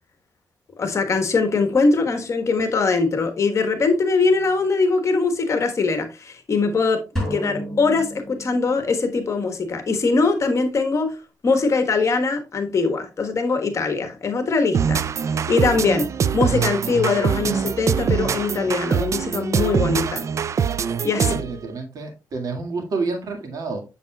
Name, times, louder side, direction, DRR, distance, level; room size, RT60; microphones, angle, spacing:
voice 1, 0.8-7.0 7.3-11.2 11.4-15.0 15.5-20.3 21.0-21.3, left 4 dB, 45° left, 1.3 m, -21 dB
sound 1, 7.2-9.0, equal, 5° left, 4.1 m, -30 dB
sound 2, 14.7-21.6, right 7 dB, 50° right, 0.4 m, -23 dB
voice 2, 21.1-23.8, right 3 dB, 65° right, 1.9 m, -29 dB
7.3 x 6.9 x 2.3 m
cardioid pair, 105°, 7 cm